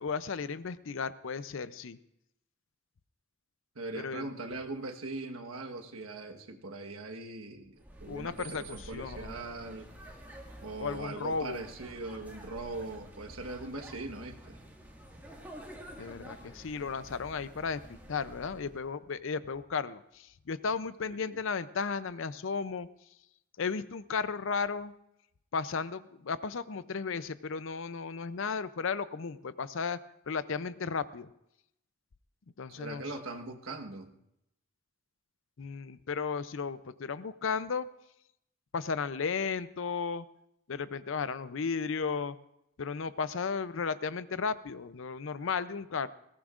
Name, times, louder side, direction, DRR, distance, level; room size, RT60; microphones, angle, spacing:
voice 1, 0.0-2.0 4.0-4.3 8.1-9.3 10.8-11.6 16.0-17.8 18.1-22.9 23.6-24.9 25.5-30.0 30.3-31.3 32.6-33.0 35.6-37.9 38.7-40.2 40.7-42.4 42.8-46.1, left 5 dB, 65° left, 15 dB, 0.5 m, -34 dB
voice 2, 3.7-9.9 10.6-14.6 21.0-21.3 32.8-34.2, right 2 dB, 75° right, 3 dB, 1.3 m, -41 dB
sound 1, 7.8-18.9, right 1 dB, 10° right, 1.8 m, -49 dB
21.0 x 17.5 x 2.5 m, 0.81 s
head